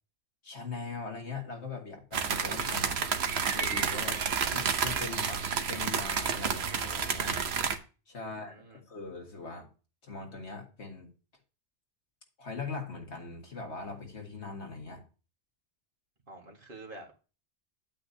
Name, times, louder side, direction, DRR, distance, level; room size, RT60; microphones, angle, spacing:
voice 1, 0.4-3.0 3.5-4.2 4.5-7.4 8.1-8.6 8.9-9.7 10.0-11.1 12.4-15.0, left 4 dB, 85° left, 2.0 m, -41 dB
sound 1, 2.1-7.8, right 6 dB, 75° right, 1.1 m, -30 dB
voice 2, 8.2-8.8 16.3-17.2, right 2 dB, 55° right, 1.8 m, -50 dB
8.7 x 8.4 x 2.7 m
omnidirectional pair, 1.1 m